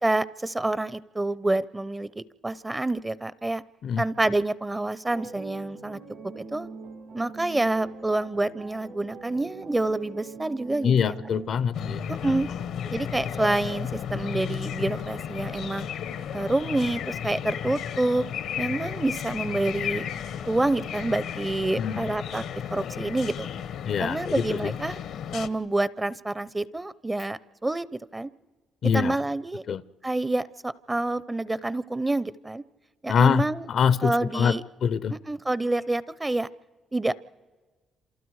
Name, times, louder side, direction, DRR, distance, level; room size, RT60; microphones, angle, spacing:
voice 1, 0.0-3.6 4.0-6.0 6.2-6.7 7.1-11.1 12.1-12.5 12.9-15.9 16.3-18.3 18.6-20.0 20.4-22.4 22.7-23.5 24.0-25.0 25.3-28.3 28.8-29.6 30.0-32.6 33.0-33.7 34.0-34.6 35.1-36.5 36.9-37.1, right 2 dB, 15° right, 18 dB, 0.6 m, -27 dB
sound 1, 5.0-11.5, right 4 dB, 80° right, 4.7 m, -43 dB
voice 2, 10.8-12.0 21.8-22.0 23.8-24.7 28.8-29.2 29.7-29.8 33.1-35.2, left 7 dB, 60° left, 18 dB, 0.6 m, -24 dB
sound 2, 11.7-25.5, left 8 dB, 80° left, 1.0 m, -33 dB
29.5 x 27.5 x 4.8 m, 1.3 s
cardioid pair, 90°, 0 cm